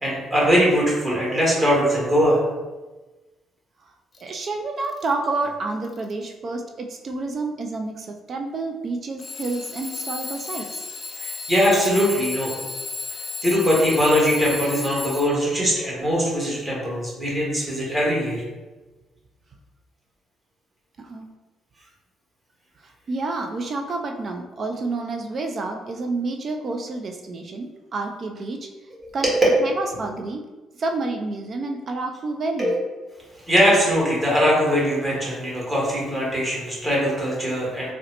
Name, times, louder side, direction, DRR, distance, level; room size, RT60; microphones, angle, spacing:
voice 1, 0.0-2.4 11.2-12.5 13.4-18.4 29.2-29.3 32.6-32.8 33.5-37.9, equal, 25° right, -5 dB, 1.4 m, -21 dB
Alarm / Clock, 4.1-4.3 4.8-5.3 5.8-6.2 7.1-7.2 9.2-15.6, left 4 dB, 35° left, 0.5 m, -34 dB
voice 2, 4.2-10.8 21.0-21.3 22.8-28.7 29.1-30.5 30.7-32.7, right 3 dB, 50° right, 3 dB, 0.3 m, -29 dB
3.7 x 2.1 x 2.8 m, 1.2 s
supercardioid pair, 75°, 0 cm